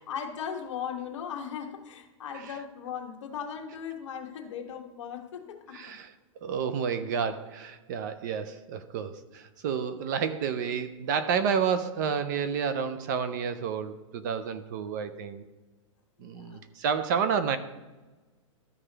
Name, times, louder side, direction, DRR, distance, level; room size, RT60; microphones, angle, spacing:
voice 1, 0.0-6.0 16.2-16.6, left 7 dB, 60° left, 3 dB, 1.2 m, -38 dB
voice 2, 5.7-6.1 6.4-15.4 16.2-17.6, right 6 dB, 35° right, 11 dB, 0.5 m, -30 dB
13.0 x 4.9 x 3.3 m, 1.2 s
supercardioid pair, 165°, 17 cm